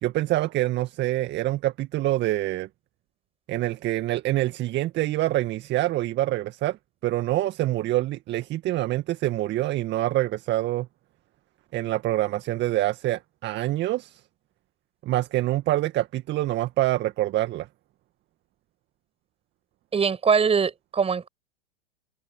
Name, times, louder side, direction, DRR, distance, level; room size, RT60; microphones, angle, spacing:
voice 1, 0.0-2.7 3.5-6.8 7.0-10.9 11.7-14.2 15.0-17.7, right 15 dB, 30° right, 1.9 m, -26 dB
voice 2, 19.9-21.3, right 6 dB, 15° right, 7.4 m, -22 dB
open air
hypercardioid pair, 100°, 34 cm